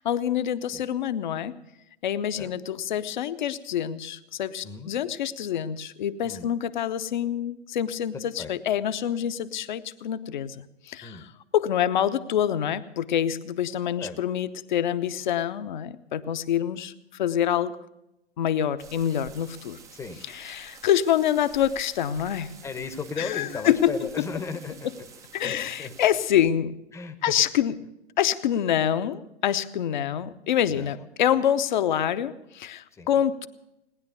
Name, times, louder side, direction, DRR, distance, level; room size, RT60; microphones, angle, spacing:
voice 1, 0.0-1.5 2.0-11.2 11.5-17.8 18.4-19.8 20.4-22.5 23.2-23.9 25.3-26.7 27.2-27.7 28.2-33.5, left 10 dB, 45° left, 12 dB, 0.9 m, -26 dB
sound 1, 18.8-26.3, right 6 dB, 10° right, 0.6 m, -49 dB
voice 2, 22.6-24.9 25.4-25.9 26.9-27.3 30.7-31.1 32.9-33.2, left 4 dB, 10° left, 9 dB, 0.9 m, -36 dB
19.0 x 10.5 x 6.8 m, 0.89 s
figure-of-eight pair, 115°, 33 cm